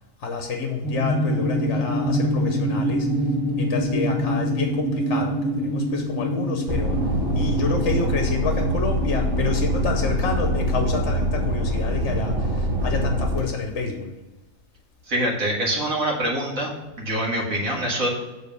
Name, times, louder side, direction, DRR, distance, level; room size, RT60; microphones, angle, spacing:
voice 1, 0.2-3.1 3.6-7.0 7.3-14.1, left 5 dB, 60° left, 3 dB, 1.1 m, -28 dB
sound 1, 0.8-12.9, equal, 15° left, 2.9 m, -27 dB
sound 2, 6.7-13.4, equal, 45° right, 1.4 m, -24 dB
voice 2, 15.1-16.7 17.0-18.1, right 1 dB, 80° right, -2 dB, 2.1 m, -24 dB
7.4 x 4.1 x 6.7 m, 1.1 s
omnidirectional pair, 1.4 m